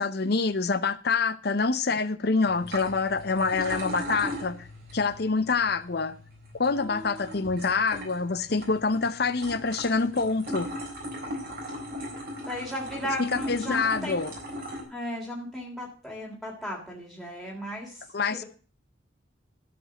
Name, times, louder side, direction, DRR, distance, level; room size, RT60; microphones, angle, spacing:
voice 1, 0.0-4.7 4.9-6.2 6.6-10.7 13.2-14.3 18.1-18.4, left 4 dB, 55° left, 0.7 m, -26 dB
sound 1, 2.5-14.8, equal, 50° right, 4.2 m, -38 dB
voice 2, 6.7-7.5 11.7-11.8 12.3-14.2 14.9-18.0 18.3-18.4, equal, ahead, 3.3 m, -36 dB
12.5 x 5.4 x 7.6 m
head